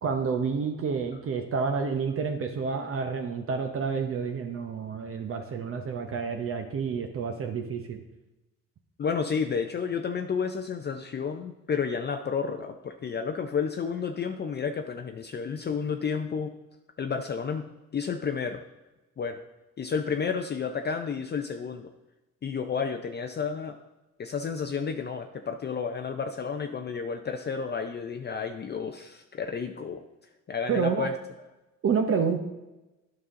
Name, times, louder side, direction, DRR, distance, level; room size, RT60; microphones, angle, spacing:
voice 1, 0.0-8.0 30.7-31.1 31.8-32.4, right 5 dB, 45° right, 4 dB, 0.8 m, -29 dB
voice 2, 9.0-16.5 17.0-18.6 19.2-19.4 19.8-21.9 22.4-23.8 24.2-30.0 30.5-31.1, left 6 dB, 35° left, 6 dB, 0.5 m, -31 dB
9.5 x 5.4 x 3.7 m, 1.0 s
cardioid pair, 90°, 30 cm